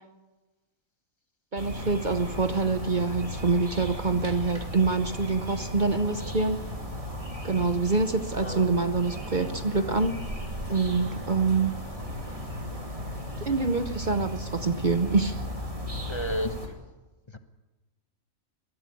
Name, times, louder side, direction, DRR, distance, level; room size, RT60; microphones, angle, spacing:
voice 1, 1.5-6.6 7.4-10.2 10.7-11.7 13.4-15.4, right 4 dB, 40° right, 9 dB, 0.9 m, -26 dB
sound 1, 1.6-16.7, left 1 dB, 25° right, 3.0 m, -36 dB
voice 2, 8.4-8.7 16.1-16.5, equal, 20° left, 8 dB, 1.1 m, -31 dB
22.0 x 14.5 x 8.5 m, 1.2 s
omnidirectional pair, 1.5 m